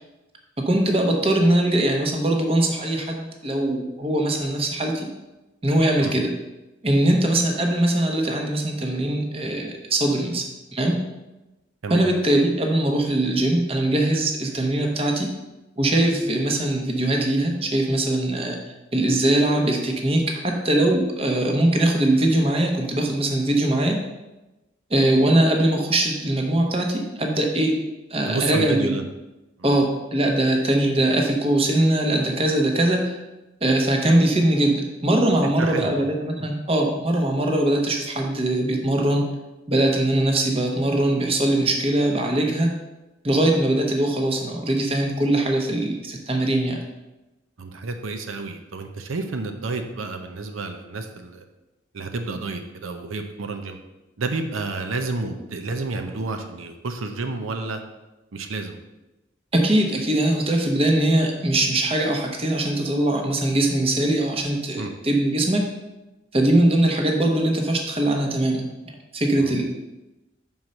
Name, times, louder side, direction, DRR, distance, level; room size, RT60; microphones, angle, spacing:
voice 1, 0.6-5.1 5.6-6.3 6.8-10.5 10.7-11.0 11.9-15.3 15.8-18.6 18.9-24.0 24.9-27.8 28.1-28.9 29.6-33.2 33.6-39.3 39.7-42.7 43.2-46.8 59.5-65.6 66.3-68.7 69.1-69.6, right 1 dB, 30° right, 2 dB, 1.0 m, -21 dB
voice 2, 28.3-29.0 29.6-29.8 35.6-36.1 36.4-36.5 47.6-51.4 51.9-53.8 54.2-57.8 58.3-58.8 64.8-64.9 69.4-69.6, right 3 dB, 90° right, 6 dB, 0.7 m, -30 dB
5.6 x 4.6 x 6.4 m, 1.0 s
head